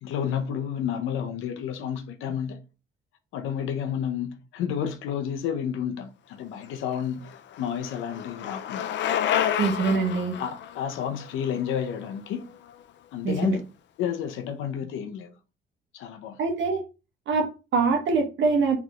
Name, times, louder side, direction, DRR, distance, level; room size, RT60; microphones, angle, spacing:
voice 1, 0.0-2.6 3.3-7.3 7.6-8.9 10.4-10.5 10.7-12.4 13.1-13.6 14.0-15.3 15.9-16.4, left 8 dB, 90° left, 0.8 m, -30 dB
Bicycle, 6.7-12.7, left 10 dB, 65° left, 0.4 m, -30 dB
voice 2, 9.6-10.4 13.2-13.6 16.4-16.8 17.3-18.8, right 4 dB, 70° right, 1.1 m, -24 dB
4.0 x 3.5 x 3.0 m
cardioid pair, 90°, 20 cm